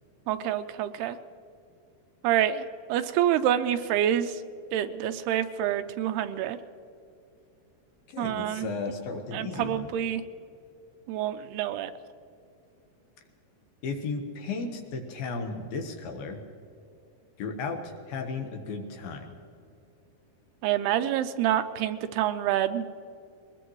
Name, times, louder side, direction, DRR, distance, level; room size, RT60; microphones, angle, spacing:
voice 1, 0.3-1.2 2.2-4.4 4.7-6.6 8.2-8.7 9.3-10.2 11.1-11.9 20.6-22.9, right 11 dB, 85° right, 9 dB, 2.6 m, -27 dB
voice 2, 8.1-9.9 13.8-16.4 17.4-19.4, left 4 dB, 70° left, 4 dB, 2.8 m, -35 dB
21.5 x 20.0 x 3.1 m, 2.6 s
omnidirectional pair, 4.7 m